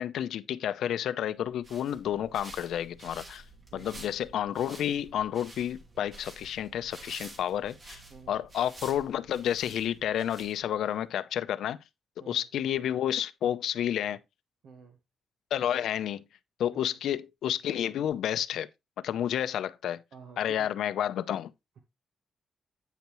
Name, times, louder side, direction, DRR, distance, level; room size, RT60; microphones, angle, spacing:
voice 1, 0.0-3.4 3.7-8.0 8.3-11.8 12.3-14.2 15.5-16.2 16.6-18.7 19.0-20.0 20.4-21.5, left 10 dB, 85° left, 0.6 m, -30 dB
sound 1, 1.4-10.9, right 2 dB, 35° right, 3.1 m, -49 dB
voice 2, 8.1-8.4 12.2-12.4 14.6-15.0 16.7-17.0 20.1-20.7, right 5 dB, 80° right, 1.4 m, -50 dB
9.2 x 6.9 x 3.0 m
cardioid pair, 125°, 0 cm